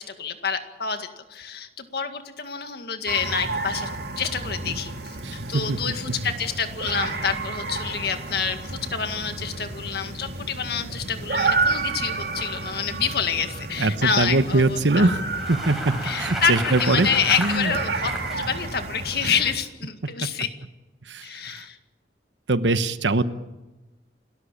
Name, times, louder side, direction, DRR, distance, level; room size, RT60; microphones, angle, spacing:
voice 1, 0.0-3.9 4.2-15.1 16.0-20.5 21.2-21.8, left 6 dB, 60° left, 7 dB, 2.0 m, -28 dB
sound 1, 3.1-19.5, right 3 dB, 65° right, 2.2 m, -31 dB
voice 2, 5.2-5.8 6.1-6.2 13.8-15.2 15.5-17.1 17.4-17.7 19.2-19.3 21.1-21.6 22.5-23.2, right 2 dB, 90° right, 12 dB, 1.1 m, -22 dB
Bicycle, 15.2-18.4, right 1 dB, ahead, 5.1 m, -33 dB
28.5 x 13.5 x 8.7 m, 1.1 s
head